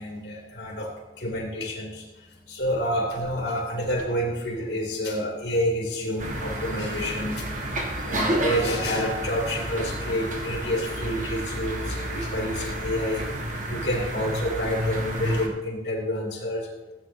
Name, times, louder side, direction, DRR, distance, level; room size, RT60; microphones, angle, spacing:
voice 1, 0.0-7.5 8.0-13.3 13.7-16.7, equal, 75° left, -3 dB, 2.5 m, -29 dB
sound 1, 6.2-15.5, right 1 dB, 45° right, 1.4 m, -30 dB
15.0 x 8.8 x 3.1 m, 1.1 s
head